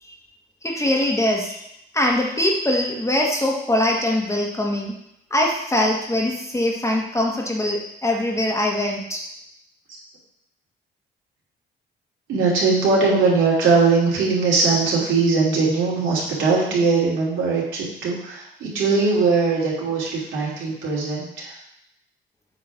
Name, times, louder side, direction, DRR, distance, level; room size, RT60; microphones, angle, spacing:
voice 1, 0.6-1.6 1.9-4.9 5.3-9.2, left 1 dB, 15° left, -1 dB, 1.6 m, -22 dB
voice 2, 12.3-21.5, right 4 dB, 75° right, -5 dB, 3.0 m, -20 dB
8.0 x 3.8 x 6.0 m, 0.78 s
cardioid pair, 90°, 20 cm